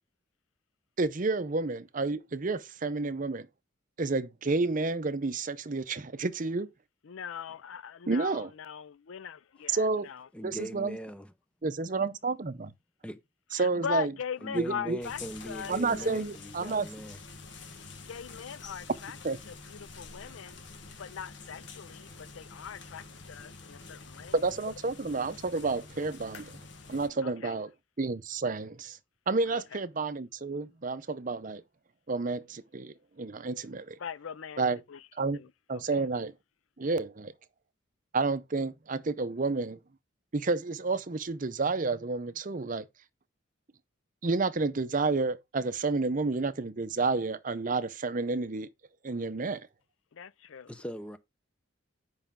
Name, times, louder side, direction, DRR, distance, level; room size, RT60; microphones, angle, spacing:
voice 1, 1.0-3.5 4.0-6.7 8.1-8.5 9.7-10.1 10.4-11.0 11.6-12.7 13.5-14.1 14.5-15.0 15.7-16.9 19.2-19.4 24.3-26.6 26.9-27.7 28.0-29.0 29.3-31.6 32.1-34.0 34.6-34.8 35.1-35.4 35.7-36.3 36.8-37.3 38.1-39.8 40.3-42.9 44.2-48.7 49.0-49.7, right 3 dB, 40° right, 0.6 m, -30 dB
voice 2, 7.0-10.3 13.6-16.1 18.1-19.2 19.5-20.6 21.0-24.3 27.2-27.6 29.5-29.6 34.0-34.6 34.9-35.0 35.3-35.5 35.9-36.0 50.1-50.7, left 7 dB, 85° left, 0.5 m, -40 dB
voice 3, 10.3-11.3 13.0-13.2 14.4-17.2 50.7-51.2, equal, 5° left, 0.7 m, -40 dB
sound 1, 15.0-27.1, left 4 dB, 60° left, 1.5 m, -47 dB
9.6 x 5.6 x 3.7 m
head